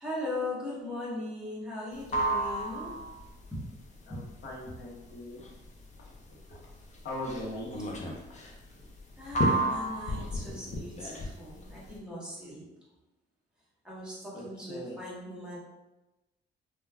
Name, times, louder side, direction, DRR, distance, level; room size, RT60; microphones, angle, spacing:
voice 1, 0.0-2.9 9.2-12.6 13.8-15.6, left 2 dB, 5° right, -7 dB, 1.2 m, -39 dB
sound 1, 1.9-12.0, right 1 dB, 35° left, 0.6 m, -32 dB
voice 2, 4.1-5.4 6.0-6.1 6.5-6.6 7.0-7.9 9.6-9.7 14.3-15.0, left 1 dB, 65° left, -3 dB, 0.9 m, -40 dB
3.3 x 2.2 x 2.3 m, 1.0 s
cardioid pair, 90°, 20 cm